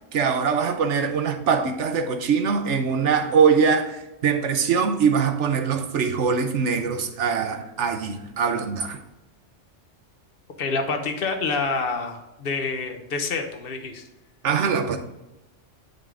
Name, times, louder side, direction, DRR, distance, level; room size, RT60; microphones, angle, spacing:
voice 1, 0.1-9.0 14.4-15.0, right 6 dB, 75° right, 7 dB, 1.1 m, -22 dB
voice 2, 10.6-14.0, left 4 dB, 55° left, 5 dB, 1.1 m, -27 dB
10.0 x 3.7 x 3.7 m, 0.98 s
omnidirectional pair, 1.2 m